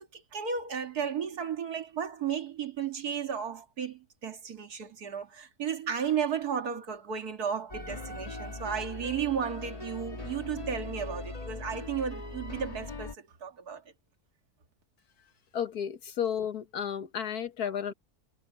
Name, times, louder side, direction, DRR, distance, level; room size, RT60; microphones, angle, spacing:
voice 1, 0.1-13.8, right 7 dB, 80° right, 2.3 m, -34 dB
sound 1, 7.7-13.1, left 2 dB, 25° left, 1.6 m, -40 dB
voice 2, 15.5-17.9, left 8 dB, 80° left, 1.8 m, -32 dB
omnidirectional pair, 1.6 m